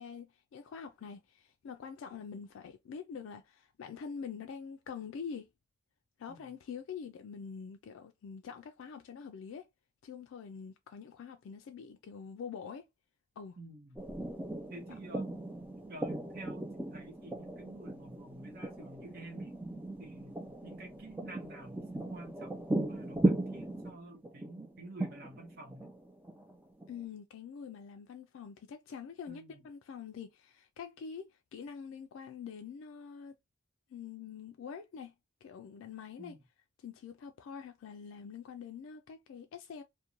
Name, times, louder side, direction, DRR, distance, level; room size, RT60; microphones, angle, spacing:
voice 1, 0.0-5.5 6.2-9.7 10.0-12.9 13.4-13.6 26.9-33.3 33.9-35.1 35.4-36.4 36.8-39.8, left 6 dB, 70° left, 0.3 m, -45 dB
voice 2, 13.6-14.0 14.7-15.5 15.9-19.6 20.0-25.9 29.3-29.7 36.2-36.4, right 2 dB, 45° right, 0.6 m, -50 dB
sound 1, 14.0-27.0, right 2 dB, 10° right, 0.4 m, -37 dB
2.5 x 2.1 x 2.9 m
head